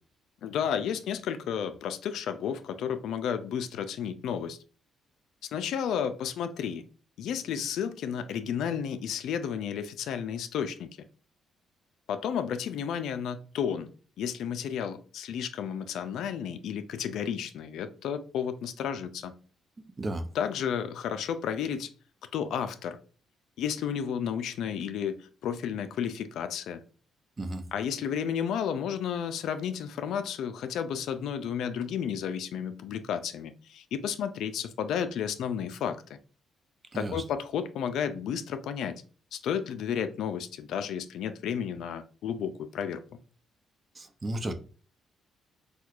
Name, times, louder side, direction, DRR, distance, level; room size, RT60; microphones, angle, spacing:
voice 1, 0.4-4.6 5.5-6.8 7.2-10.9 12.1-13.9 14.2-19.3 20.3-21.9 22.3-23.0 23.6-26.8 27.7-36.2 36.9-39.0 39.3-43.0, left 8 dB, 80° left, 0.3 m, -32 dB
voice 2, 19.8-20.2 27.4-27.6 36.9-37.2 44.0-44.5, right 1 dB, 30° right, 0.5 m, -34 dB
4.3 x 2.3 x 2.4 m
cardioid pair, 90°, 0 cm